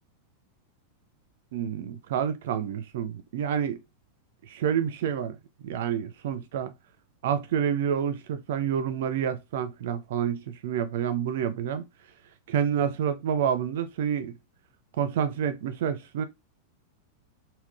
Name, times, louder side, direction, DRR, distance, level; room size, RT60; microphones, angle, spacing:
voice 1, 1.5-3.8 4.5-5.4 5.6-6.7 7.2-11.8 12.5-14.3 15.0-16.2, right 8 dB, 55° right, 0.4 m, -28 dB
3.5 x 2.2 x 2.4 m
figure-of-eight pair, 90°, 0 cm